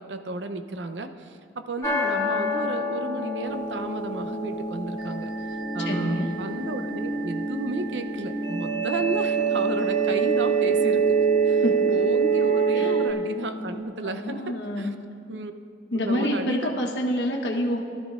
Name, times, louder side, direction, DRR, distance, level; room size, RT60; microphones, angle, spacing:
voice 1, 0.0-11.2 11.4-11.6 11.9-14.9 15.3-15.5 15.9-16.7, right 2 dB, 90° right, 7 dB, 0.7 m, -33 dB
sound 1, 1.8-13.8, left 2 dB, 20° left, 1.4 m, -32 dB
sound 2, 3.5-13.1, right 6 dB, 25° right, 1.8 m, -25 dB
voice 2, 5.8-6.3 11.6-11.9 12.8-12.9 14.0-14.9 15.9-17.8, left 1 dB, 75° left, 0 dB, 1.2 m, -27 dB
20.0 x 12.5 x 2.5 m, 2.4 s
head